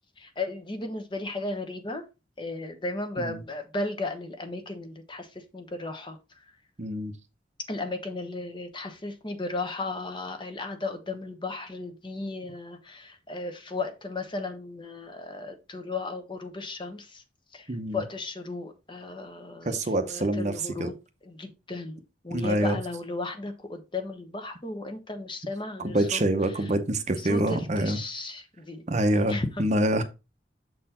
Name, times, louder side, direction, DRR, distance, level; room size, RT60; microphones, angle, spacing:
voice 1, 0.2-2.0 2.4-6.5 7.7-17.2 17.5-21.0 21.2-26.7 27.1-28.8 29.3-29.6, left 2 dB, 25° left, 1.0 m, -35 dB
voice 2, 6.8-7.1 17.7-18.0 19.6-20.5 20.8-20.9 22.3-22.8 25.8-28.0 28.9-30.0, right 1 dB, 40° right, 0.7 m, -26 dB
6.9 x 4.2 x 4.2 m
head